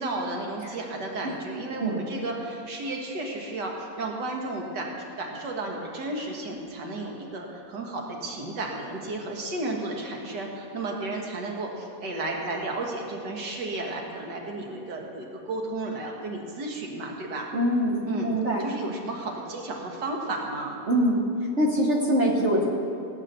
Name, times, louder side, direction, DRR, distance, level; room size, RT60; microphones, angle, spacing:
voice 1, 0.0-17.5 18.0-18.3 18.6-20.8, right 2 dB, 90° right, 0 dB, 2.1 m, -33 dB
voice 2, 17.5-18.6 20.9-21.2 21.6-22.7, equal, 45° right, -1 dB, 1.5 m, -23 dB
18.5 x 8.3 x 6.8 m, 2.7 s
omnidirectional pair, 1.8 m